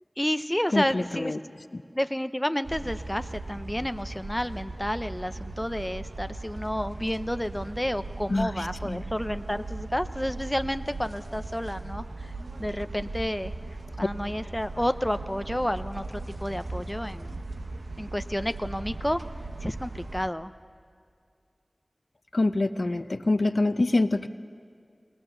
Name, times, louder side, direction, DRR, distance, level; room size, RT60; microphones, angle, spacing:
voice 1, 0.2-1.3 1.9-12.3 12.6-13.5 14.0-17.4 18.0-19.2 19.6-20.5, equal, 10° left, 10 dB, 0.6 m, -30 dB
voice 2, 0.7-1.4 1.7-1.8 8.3-9.0 22.3-24.3, left 2 dB, 65° left, 11 dB, 0.6 m, -26 dB
sound 1, 2.6-20.3, right 2 dB, 75° right, 0.8 m, -38 dB
21.5 x 19.5 x 6.8 m, 2.2 s
wide cardioid pair, 50°, 0 cm